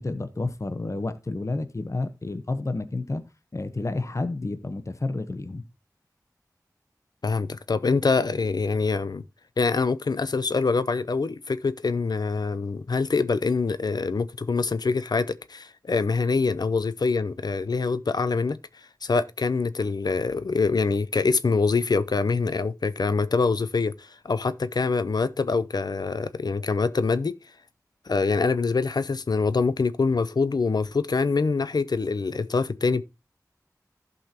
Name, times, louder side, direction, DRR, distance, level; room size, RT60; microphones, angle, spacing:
voice 1, 0.0-3.2 3.5-5.6, left 2 dB, 50° left, 1.0 m, -30 dB
voice 2, 7.2-9.2 9.6-18.6 19.0-27.4 28.1-33.0, left 4 dB, 90° left, 0.6 m, -25 dB
15.0 x 5.5 x 2.8 m
wide cardioid pair, 60°, 7 cm